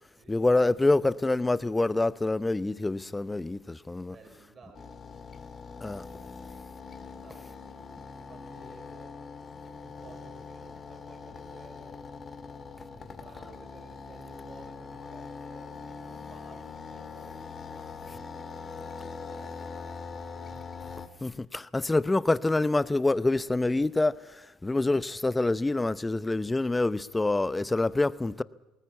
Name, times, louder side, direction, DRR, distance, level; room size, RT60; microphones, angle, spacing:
voice 1, 0.3-4.1 5.8-6.1 21.2-28.4, left 2 dB, 15° left, 0.8 m, -26 dB
voice 2, 4.1-4.9 6.8-7.9 8.3-9.2 9.7-12.0 12.9-19.6 20.0-21.0 21.2-21.5 22.0-22.1, right 3 dB, 40° right, 4.5 m, -55 dB
sound 1, 4.7-21.1, left 5 dB, 35° left, 2.0 m, -42 dB
20.0 x 19.0 x 8.3 m
hypercardioid pair, 65°, 0 cm